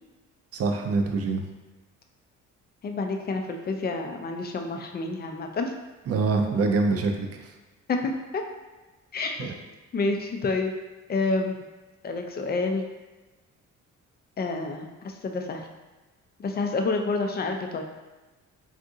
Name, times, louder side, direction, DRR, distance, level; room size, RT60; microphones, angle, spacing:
voice 1, 0.5-1.4 6.1-7.4 9.4-9.5, right 3 dB, 55° right, 4 dB, 0.5 m, -25 dB
voice 2, 2.8-5.7 7.9-8.4 9.1-9.5 9.9-10.7 11.1-11.6 12.0-12.8 14.4-15.6 16.4-17.8, left 3 dB, 35° left, 4 dB, 0.4 m, -28 dB
2.7 x 2.5 x 3.6 m, 1.2 s
cardioid pair, 90°, 30 cm